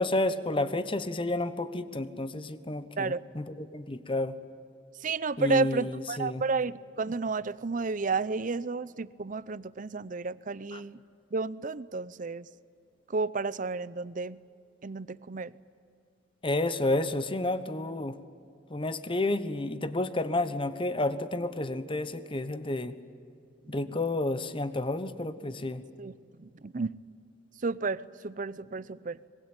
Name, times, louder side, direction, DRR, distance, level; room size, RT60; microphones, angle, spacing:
voice 1, 0.0-4.3 5.4-6.4 10.7-10.8 16.4-18.1 18.7-22.9 23.7-25.8, left 2 dB, 30° left, 12 dB, 1.1 m, -30 dB
voice 2, 5.0-11.0 11.3-12.5 13.1-14.4 14.8-15.5 23.7-23.9 26.0-27.0 27.6-29.2, right 4 dB, 45° right, 18 dB, 0.6 m, -32 dB
25.0 x 22.0 x 9.0 m, 2.5 s
head